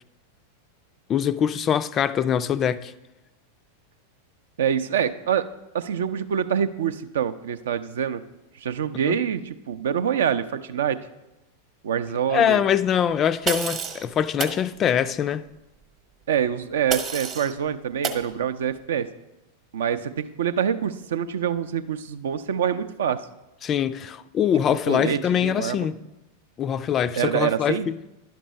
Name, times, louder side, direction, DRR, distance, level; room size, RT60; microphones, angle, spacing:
voice 1, 1.1-2.9 9.1-9.2 12.3-15.4 23.6-26.0 26.6-27.9, left 9 dB, 30° left, 0.3 m, -23 dB
voice 2, 4.6-5.5 5.7-8.2 8.6-11.0 11.8-12.6 16.3-19.1 19.7-23.3 24.7-25.8 27.2-27.9, right 8 dB, 60° right, 0.5 m, -25 dB
sound 1, 13.5-14.1 14.4-14.6 16.9-17.5 18.0-18.2, right 6 dB, 30° right, 0.9 m, -28 dB
10.5 x 6.0 x 5.2 m
figure-of-eight pair, 90°, 0 cm